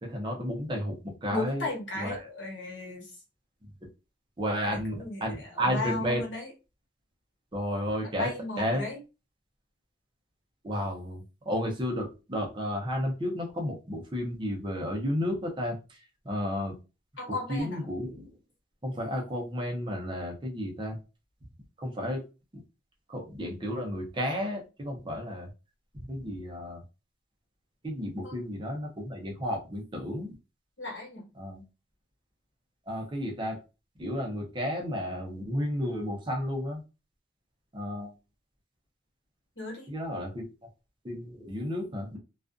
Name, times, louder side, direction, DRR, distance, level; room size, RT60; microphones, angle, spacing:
voice 1, 0.0-1.7 2.0-2.1 4.4-6.2 7.5-8.3 8.6-8.8 10.6-16.0 16.2-16.8 17.5-18.3 18.8-21.0 21.8-22.2 23.1-25.5 26.1-26.8 27.8-30.3 31.4-31.6 32.9-33.6 34.0-36.8 37.7-38.1 39.9-40.4 41.0-42.2, equal, 25° right, 0 dB, 0.6 m, -32 dB
voice 2, 1.3-3.2 4.6-6.5 8.0-9.0 17.2-17.8 28.2-28.4 30.8-31.3 39.6-39.9, left 2 dB, 85° left, -1 dB, 1.2 m, -36 dB
2.4 x 2.3 x 2.4 m, 0.30 s
head